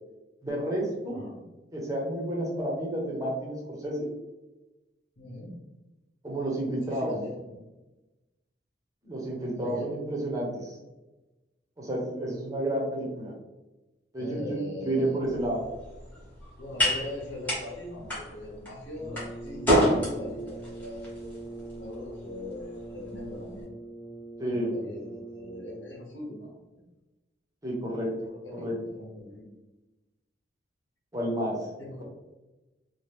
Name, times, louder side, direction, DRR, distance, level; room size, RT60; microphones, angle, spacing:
voice 1, 0.4-1.2 1.7-4.1 6.2-7.1 9.0-10.8 11.8-13.3 14.1-15.6 24.4-24.7 27.6-28.1 28.5-28.7 31.1-31.7, right 1 dB, 20° right, -3 dB, 0.7 m, -30 dB
voice 2, 1.1-1.4 5.2-5.5 6.9-7.6 9.5-9.9 14.2-15.2 16.6-21.5 21.7-23.7 24.5-26.6 28.2-29.5 31.8-32.0, left 1 dB, 80° left, -3 dB, 1.0 m, -41 dB
sound 1, 15.2-23.6, equal, 10° left, 1.0 m, -31 dB
Brass instrument, 19.0-26.1, right 2 dB, 35° left, 1.1 m, -42 dB
2.8 x 2.2 x 3.3 m, 1.1 s
head